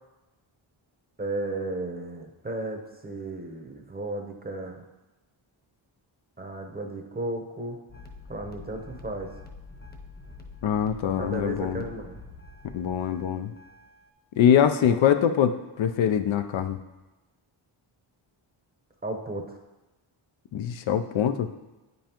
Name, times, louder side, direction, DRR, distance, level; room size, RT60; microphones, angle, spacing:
voice 1, 1.2-4.8 6.4-7.8 8.3-9.3 11.2-12.2 19.0-19.6, right 2 dB, 20° right, 3 dB, 0.8 m, -34 dB
sound 1, 7.9-14.1, left 3 dB, 20° left, 0.8 m, -46 dB
voice 2, 10.6-11.8 12.7-13.5 14.4-16.8 20.5-21.5, left 9 dB, 70° left, 9 dB, 0.6 m, -23 dB
8.8 x 5.4 x 2.9 m, 1.1 s
cardioid pair, 80°, 49 cm